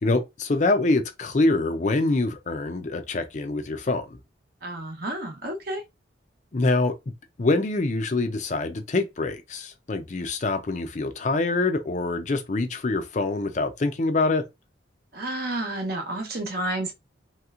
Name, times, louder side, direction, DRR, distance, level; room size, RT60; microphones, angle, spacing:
voice 1, 0.0-4.2 6.5-6.9 7.4-14.4, left 2 dB, 40° left, 0.5 m, -25 dB
voice 2, 4.6-5.8 15.1-16.9, right 1 dB, 50° right, 0.8 m, -30 dB
3.1 x 2.9 x 2.4 m
head